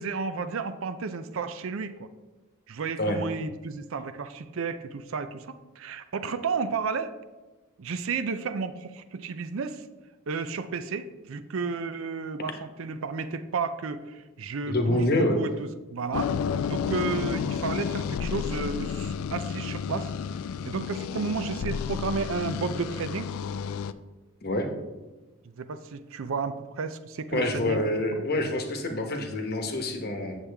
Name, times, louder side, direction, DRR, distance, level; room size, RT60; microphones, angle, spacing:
voice 1, 0.0-2.1 2.7-7.2 7.8-9.8 10.3-16.3 16.7-20.1 20.7-23.3 25.6-27.9 28.2-28.3, right 4 dB, 65° right, 11 dB, 0.5 m, -32 dB
voice 2, 14.7-15.4 24.4-24.7 27.3-30.4, left 1 dB, 45° left, 5 dB, 1.0 m, -26 dB
sound 1, 16.1-23.9, left 6 dB, 70° left, 0.3 m, -31 dB
8.2 x 7.2 x 3.4 m, 1.2 s
head